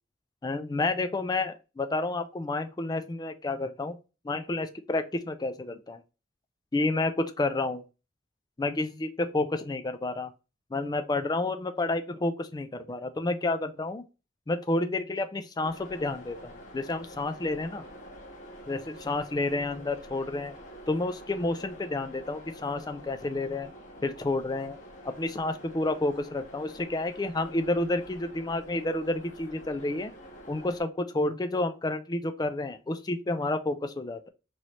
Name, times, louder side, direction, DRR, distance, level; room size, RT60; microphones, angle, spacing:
voice 1, 0.4-4.0 4.2-6.0 6.7-7.8 8.6-10.3 10.7-14.0 14.5-17.9 18.7-20.5 20.9-23.7 24.0-24.8 25.0-30.1 30.5-34.3, left 2 dB, 20° left, 0.3 m, -30 dB
sound 1, 15.6-30.8, equal, 40° left, 1.0 m, -47 dB
3.1 x 3.0 x 4.0 m
head